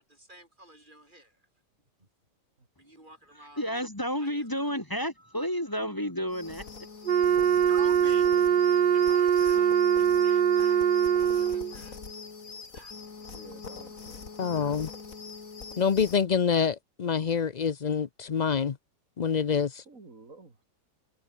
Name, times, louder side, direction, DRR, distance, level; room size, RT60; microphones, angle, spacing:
voice 1, 0.0-1.4 2.0-2.1 2.8-3.7 4.2-4.8 7.7-8.3 8.9-10.9 11.2-12.0 12.6-12.9, right 1 dB, 25° right, 6.2 m, -50 dB
voice 2, 3.3-6.7, equal, 15° left, 1.6 m, -31 dB
sound 1, 6.3-16.3, left 5 dB, 50° left, 2.6 m, -43 dB
Wind instrument woodwind instrument, 7.1-11.7, right 9 dB, 85° right, 0.4 m, -22 dB
voice 3, 13.3-14.1 19.9-20.6, right 3 dB, 50° right, 3.8 m, -50 dB
voice 4, 14.4-14.9 15.8-18.8 19.2-19.8, left 6 dB, 75° left, 0.4 m, -26 dB
omnidirectional pair, 1.8 m